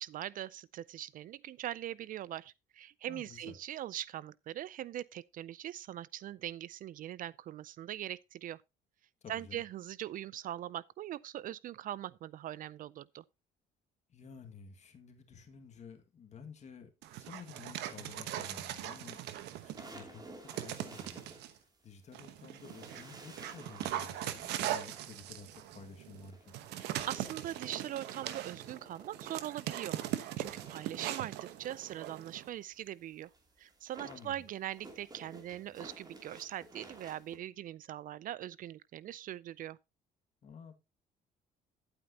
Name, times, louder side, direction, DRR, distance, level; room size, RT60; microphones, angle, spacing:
voice 1, 0.0-8.6 9.3-13.2 26.8-33.3 33.6-39.8, right 12 dB, 55° right, 0.4 m, -42 dB
voice 2, 3.1-3.6 9.2-9.6 14.1-19.2 19.6-26.6 34.0-34.4 40.4-40.7, left 5 dB, 45° left, 1.9 m, -52 dB
Dog, 17.0-19.9 20.5-21.5 22.1-32.5, right 12 dB, 85° right, 1.1 m, -40 dB
sound 1, 18.9-22.1 22.5-29.8 30.1-37.4, right 2 dB, 25° right, 2.7 m, -54 dB
11.0 x 8.7 x 2.8 m
cardioid pair, 110°, 17 cm